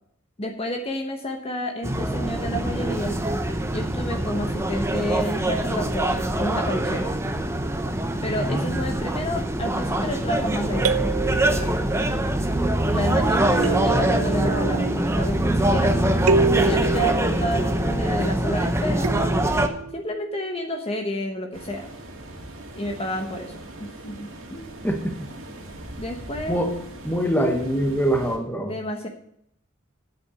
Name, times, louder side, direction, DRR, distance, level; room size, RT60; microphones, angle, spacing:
voice 1, 0.4-3.2 3.7-7.1 8.2-11.9 12.9-16.2 16.5-19.1 19.9-21.9 22.7-24.7 26.0-26.6 28.6-29.1, equal, 30° left, 3 dB, 1.0 m, -30 dB
sound 1, 1.8-19.7, right 1 dB, 15° right, 0.8 m, -24 dB
voice 2, 8.4-8.8 24.8-25.3 26.5-26.7 27.0-28.7, equal, 10° left, 5 dB, 1.3 m, -24 dB
sound 2, 10.8-12.3 13.6-15.7 16.3-18.4 19.0-20.4, right 4 dB, 85° right, 0.5 m, -28 dB
sound 3, 21.5-28.4, right 1 dB, 70° right, 2.2 m, -40 dB
8.6 x 7.8 x 7.0 m, 0.74 s
head